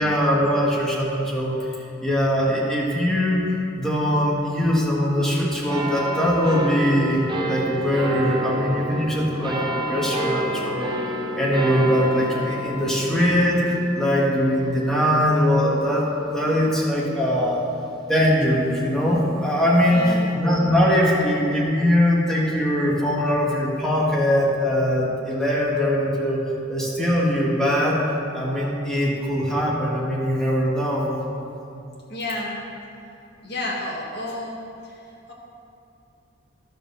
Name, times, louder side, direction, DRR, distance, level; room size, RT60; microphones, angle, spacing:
voice 1, 0.0-1.7 2.0-3.4 3.7-7.2 7.5-10.9 11.3-17.7 18.0-26.4 26.7-28.0 28.3-31.1, equal, 5° left, -5 dB, 1.7 m, -21 dB
sound 1, 5.7-18.6 19.2-19.3, equal, 25° right, 0.7 m, -30 dB
voice 2, 19.9-20.3 32.1-32.6 33.4-34.6 34.8-35.0, left 1 dB, 60° left, -4 dB, 1.8 m, -30 dB
12.0 x 5.0 x 6.9 m, 2.5 s
head